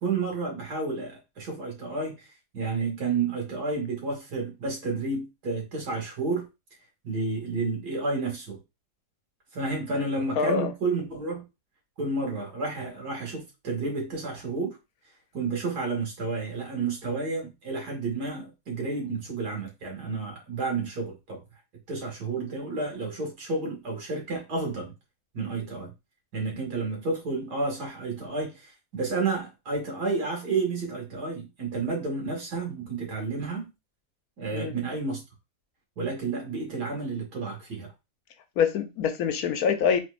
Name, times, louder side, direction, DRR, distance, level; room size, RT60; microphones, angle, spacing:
voice 1, 0.0-6.5 7.0-8.6 9.5-11.4 12.0-14.8 15.3-21.4 21.9-24.9 25.3-25.9 26.3-33.7 34.4-35.2 36.0-37.9, right 3 dB, 90° right, 2.3 m, -31 dB
voice 2, 10.4-10.7 34.5-34.7 38.6-40.0, left 7 dB, 75° left, 1.1 m, -25 dB
4.4 x 3.9 x 2.5 m
omnidirectional pair, 1.7 m